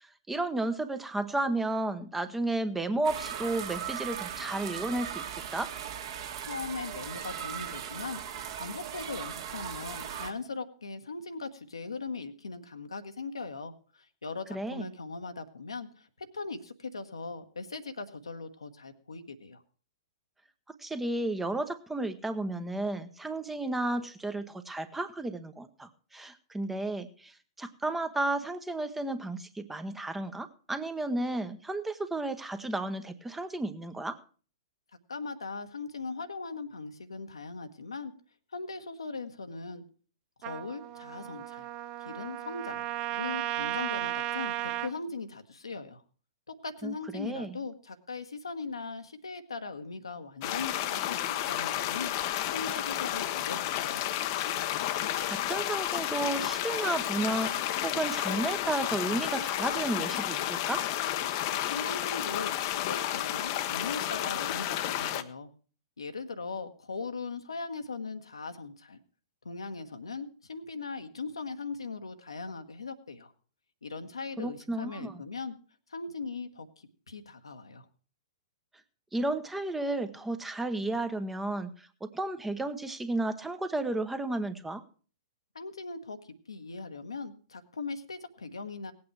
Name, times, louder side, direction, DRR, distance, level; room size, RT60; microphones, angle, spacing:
voice 1, 0.0-5.7 14.5-14.9 20.8-34.2 46.8-47.6 54.9-55.0 55.2-60.8 74.4-75.2 79.1-84.8, right 2 dB, 5° right, 9 dB, 0.9 m, -33 dB
sound 1, 3.0-10.3, right 8 dB, 50° right, 1.8 m, -38 dB
voice 2, 6.4-19.6 35.1-38.1 38.5-39.8 40.4-41.7 42.0-46.0 46.5-52.1 52.5-54.0 61.5-65.5 66.0-69.0 69.4-73.3 73.8-75.5 75.9-77.9 85.5-88.9, left 4 dB, 75° left, 7 dB, 1.2 m, -39 dB
Trumpet, 40.4-44.9, right 14 dB, 30° right, 0.6 m, -35 dB
sound 2, 50.4-65.2, left 13 dB, 40° left, 0.8 m, -31 dB
17.5 x 8.6 x 4.6 m, 0.40 s
figure-of-eight pair, 110°, 3 cm